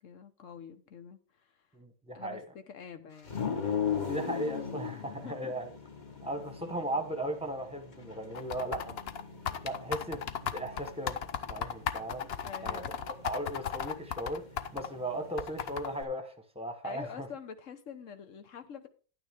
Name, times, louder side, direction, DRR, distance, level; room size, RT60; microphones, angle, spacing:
voice 1, 0.0-1.7 2.1-3.5 5.1-5.5 12.4-13.0 16.8-18.9, left 7 dB, 80° left, 1.3 m, -46 dB
voice 2, 1.7-2.4 3.9-5.7 6.2-9.0 9.6-11.2 11.5-12.3 12.6-12.9 13.2-14.4 14.7-17.3, right 1 dB, 5° right, 1.1 m, -37 dB
sound 1, 3.2-16.0, left 7 dB, 40° left, 1.2 m, -40 dB
sound 2, 8.3-14.9 15.4-16.0, left 8 dB, 60° left, 0.9 m, -35 dB
11.0 x 9.2 x 3.6 m
omnidirectional pair, 1.3 m